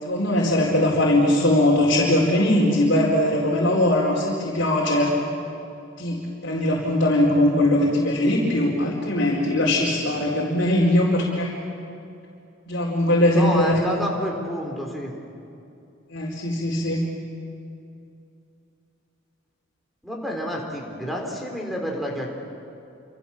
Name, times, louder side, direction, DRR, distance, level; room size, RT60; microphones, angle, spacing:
voice 1, 0.0-5.1 6.0-11.5 12.7-13.8 16.1-17.0, left 1 dB, 60° left, -5 dB, 4.5 m, -20 dB
voice 2, 13.3-15.1 20.0-22.3, equal, ahead, 0 dB, 4.0 m, -29 dB
29.5 x 27.0 x 7.4 m, 2.6 s
head